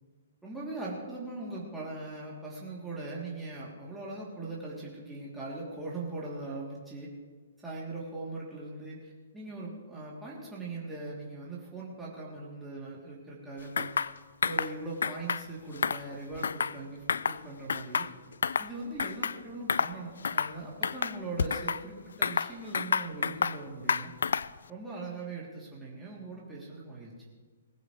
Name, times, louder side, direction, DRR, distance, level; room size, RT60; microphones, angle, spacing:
voice 1, 0.4-7.1 7.6-13.9 14.4-18.1 18.6-24.1 24.7-27.1, right 2 dB, 5° right, -6 dB, 3.1 m, -40 dB
sound 1, 13.8-14.1 14.4-14.7 15.0-15.4 15.8-16.8 17.1-17.4 17.7-18.7 19.0-19.4 19.7-19.9 20.2-20.5 20.8-21.8 22.2-23.6 23.9-24.6, left 6 dB, 70° left, 0.4 m, -29 dB
19.5 x 15.0 x 3.3 m, 1.4 s
figure-of-eight pair, 125°, 0 cm